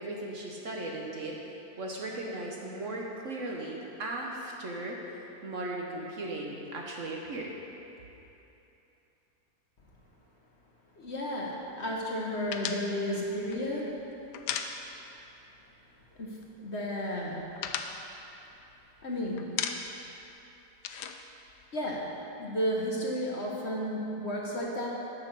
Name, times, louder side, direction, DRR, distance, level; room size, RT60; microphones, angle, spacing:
voice 1, 0.0-1.4 1.8-5.0 5.4-7.5, right 2 dB, 55° right, -1 dB, 1.2 m, -37 dB
voice 2, 11.0-14.0 16.2-17.5 19.0-19.5 21.7-24.9, equal, 45° left, -3 dB, 1.3 m, -33 dB
sound 1, 12.5-15.3 15.6-15.7 16.0-16.7 17.1-19.0 19.4-20.1 20.4-22.2, left 8 dB, 85° left, 1.2 m, -37 dB
10.5 x 5.9 x 6.8 m, 2.9 s
omnidirectional pair, 1.8 m